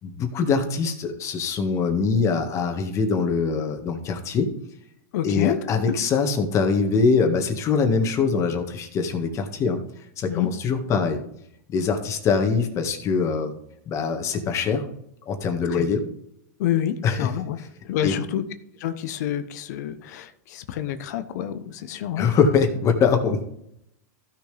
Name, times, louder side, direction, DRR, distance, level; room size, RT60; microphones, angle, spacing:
voice 1, 0.0-4.5 5.2-9.8 10.2-11.2 11.7-13.5 13.9-14.8 15.2-16.0 17.0-17.3 17.6-17.7 18.0-18.1 22.2-23.4, left 5 dB, 30° left, 5 dB, 1.8 m, -23 dB
voice 2, 5.1-5.6 10.3-10.5 15.7-15.9 16.6-17.6 17.8-18.4 18.8-22.3, left 11 dB, 65° left, 10 dB, 1.0 m, -28 dB
15.0 x 6.6 x 3.5 m, 0.75 s
supercardioid pair, 135°, 10 cm